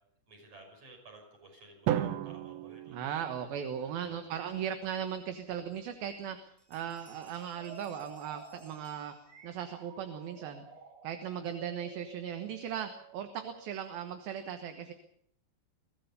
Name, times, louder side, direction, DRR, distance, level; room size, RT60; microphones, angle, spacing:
voice 1, 0.3-4.2, right 2 dB, 35° right, 2 dB, 7.1 m, -55 dB
Drum, 1.9-4.0, right 11 dB, 90° right, 3.4 m, -35 dB
voice 2, 2.9-9.1 9.4-10.7 11.0-14.9, right 8 dB, 70° right, 8 dB, 2.9 m, -38 dB
Bell, 6.2-6.3 6.6-9.7, equal, 5° left, 3.4 m, -63 dB
sound 1, 7.5-14.2, right 5 dB, 50° right, 7.3 m, -53 dB
22.5 x 16.5 x 6.8 m, 0.70 s
omnidirectional pair, 4.9 m